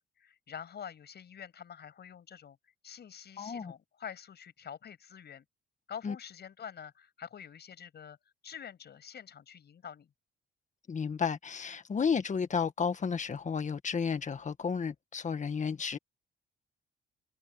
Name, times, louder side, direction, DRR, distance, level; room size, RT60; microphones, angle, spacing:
voice 1, 0.0-5.4 5.9-8.2 8.4-10.1, left 8 dB, 55° left, 6.5 m, -47 dB
voice 2, 3.4-3.7 6.0-6.1 10.9-16.0, left 6 dB, 40° left, 1.7 m, -32 dB
cardioid pair, 90°, 20 cm